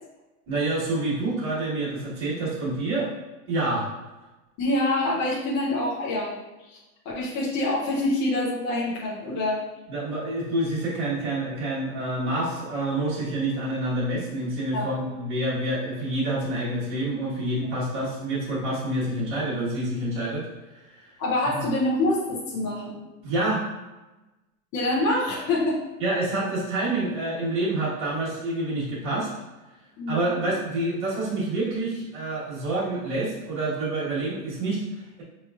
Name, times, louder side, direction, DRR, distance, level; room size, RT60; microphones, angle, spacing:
voice 1, 0.5-3.1 3.5-3.9 9.9-21.1 21.4-21.6 23.2-23.6 26.0-29.3 30.1-35.2, right 2 dB, 25° right, -8 dB, 1.4 m, -27 dB
voice 2, 4.6-6.4 6.7-6.8 7.1-9.6 14.7-15.1 21.2-23.0 24.7-25.8 30.0-30.4, left 1 dB, 25° left, -5 dB, 0.6 m, -26 dB
5.1 x 3.1 x 2.4 m, 1.1 s
hypercardioid pair, 140°, 46 cm